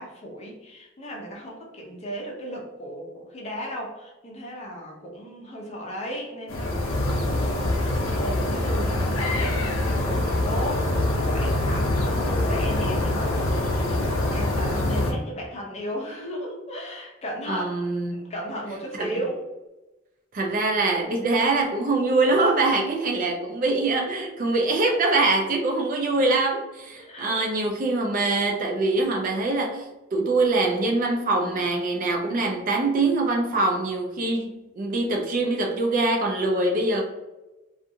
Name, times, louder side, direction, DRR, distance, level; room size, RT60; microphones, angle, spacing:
voice 1, 0.0-13.6 14.3-17.8 18.1-19.4 23.1-23.2 27.0-27.4, equal, 35° left, -1 dB, 0.6 m, -35 dB
sound 1, 6.5-15.1, left 1 dB, 85° left, 0.6 m, -24 dB
voice 2, 17.5-18.3 19.0-19.1 20.3-29.9 30.1-34.5 34.8-37.0, right 2 dB, 45° right, 2 dB, 0.4 m, -23 dB
2.5 x 2.4 x 2.6 m, 1.0 s
head